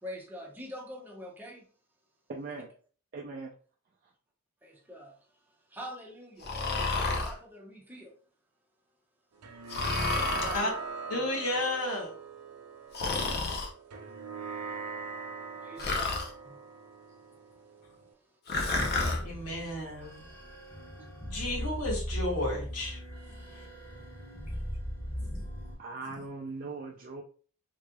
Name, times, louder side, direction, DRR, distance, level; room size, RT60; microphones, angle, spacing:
voice 1, 0.0-1.7 4.6-5.4 5.7-6.5 6.9-8.2 10.2-10.8 11.0-11.3 14.0-14.8 15.5-16.3 18.1-19.1 21.0-21.1 24.5-24.6 25.1-25.2, equal, 10° right, -1 dB, 0.8 m, -46 dB
voice 2, 2.3-2.7 3.1-3.5 4.0-4.1 25.8-27.2, right 3 dB, 40° right, -1 dB, 0.4 m, -40 dB
Breathing, 6.4-7.3 9.7-10.6 12.9-13.7 15.8-16.3 18.5-19.2, left 3 dB, 45° left, 0.7 m, -30 dB
sound 1, 9.4-18.1, right 4 dB, 85° right, 0.6 m, -41 dB
voice 3, 11.1-12.1 19.2-20.3 21.2-23.0 23.3-23.6 24.5-24.6 25.2-25.4, left 1 dB, 85° left, -3 dB, 1.5 m, -33 dB
sound 2, 18.6-25.8, equal, 10° left, 1.3 m, -38 dB
3.6 x 3.2 x 2.3 m, 0.41 s
head